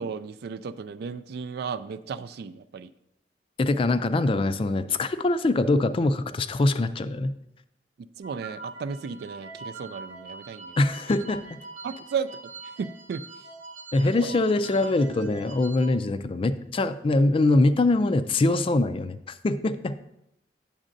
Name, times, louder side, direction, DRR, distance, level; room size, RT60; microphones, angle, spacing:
voice 1, 0.0-2.9 3.8-4.1 8.0-10.8 11.8-13.2 14.0-14.4, right 6 dB, 60° right, 12 dB, 0.3 m, -35 dB
voice 2, 3.6-7.3 10.8-11.6 13.9-19.2 19.4-20.0, left 2 dB, 30° left, 12 dB, 0.3 m, -23 dB
sound 1, 8.2-15.9, right 3 dB, 45° right, 0.8 m, -43 dB
8.6 x 7.2 x 2.6 m, 0.82 s
head